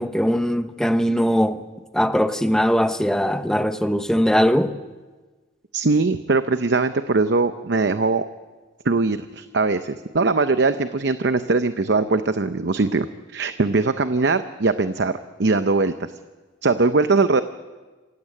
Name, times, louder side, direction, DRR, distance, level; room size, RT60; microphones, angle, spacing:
voice 1, 0.0-1.6 1.9-4.8, equal, 5° left, 0.9 m, -20 dB
voice 2, 5.7-8.3 8.8-13.1 13.3-16.1 16.6-17.4, right 3 dB, 60° right, 0.7 m, -21 dB
27.5 x 15.5 x 8.5 m
head